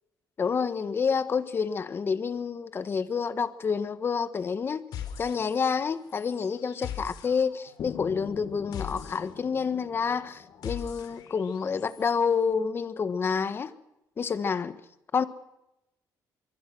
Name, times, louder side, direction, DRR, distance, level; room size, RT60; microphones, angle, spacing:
voice 1, 0.4-4.8 5.2-13.7 14.2-14.8 15.1-15.2, left 6 dB, 35° left, 1.5 m, -28 dB
sound 1, 4.9-5.8 6.1-12.1, left 8 dB, 80° left, 3.7 m, -42 dB
sound 2, 7.8-11.7, left 8 dB, 55° left, 1.9 m, -43 dB
24.5 x 24.0 x 6.2 m
cardioid pair, 135°, 7 cm